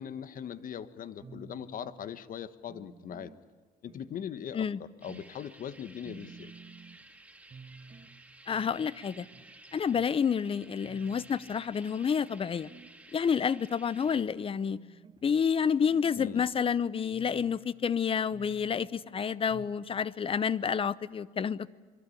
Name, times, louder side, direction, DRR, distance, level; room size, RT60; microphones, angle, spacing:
voice 1, 0.0-3.3 3.8-6.5 16.2-16.4, left 9 dB, 55° left, 13 dB, 1.3 m, -40 dB
sound 1, 1.2-2.2 2.7-3.4 3.9-4.5 5.1-5.4 5.7-5.8 6.0-7.0 7.5-8.1 8.5-9.5 9.9-10.1 10.5-10.6 10.8-11.7 12.3-12.9 13.5-14.1 14.7-15.2 15.7-16.7 17.1-17.7 18.3-18.9 19.5-19.8 20.1-20.2 20.4-20.5, right 5 dB, 30° right, 1.4 m, -52 dB
sound 2, 5.0-14.2, right 2 dB, 10° right, 2.2 m, -54 dB
voice 2, 8.5-9.3 9.7-12.7 13.1-14.8 15.2-21.7, left 7 dB, 35° left, 19 dB, 0.7 m, -29 dB
27.0 x 22.5 x 8.5 m, 1.5 s
cardioid pair, 110°, 17 cm